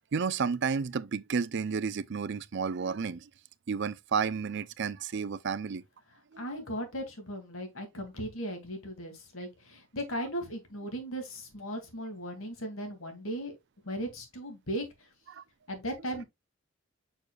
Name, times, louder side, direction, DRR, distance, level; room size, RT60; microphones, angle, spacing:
voice 1, 0.1-3.3 3.7-5.8 6.3-6.4 15.3-15.4, right 6 dB, 60° right, 0.5 m, -31 dB
voice 2, 6.4-13.6 13.8-15.1 15.7-16.3, equal, 85° left, 2.4 m, -37 dB
6.5 x 6.5 x 2.3 m
head